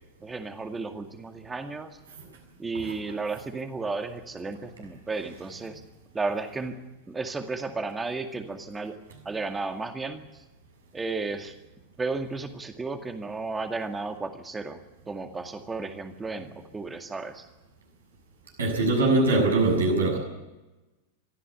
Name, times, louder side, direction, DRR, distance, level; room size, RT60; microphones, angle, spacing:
voice 1, 0.2-1.9 2.6-5.8 6.1-6.8 7.1-9.0 9.3-10.2 10.9-11.5 12.0-14.8 15.1-17.4, right 3 dB, 15° right, 7 dB, 2.1 m, -33 dB
voice 2, 18.6-20.2, right 2 dB, 70° right, 2 dB, 7.2 m, -22 dB
24.0 x 14.5 x 8.6 m, 1.1 s
figure-of-eight pair, 90°, 0 cm